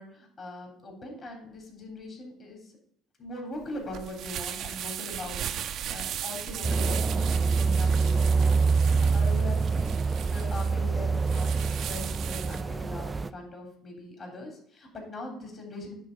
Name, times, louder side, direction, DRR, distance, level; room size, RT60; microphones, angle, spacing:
voice 1, 0.0-2.7 3.2-5.4 5.9-8.2 8.9-10.0 10.2-15.9, left 2 dB, 40° left, 1 dB, 3.6 m, -41 dB
sound 1, 3.6-12.6, right 10 dB, 60° right, 0.7 m, -37 dB
sound 2, 6.6-13.3, right 4 dB, 25° right, 0.3 m, -25 dB
9.7 x 3.8 x 6.8 m, 0.67 s
supercardioid pair, 85°, 0 cm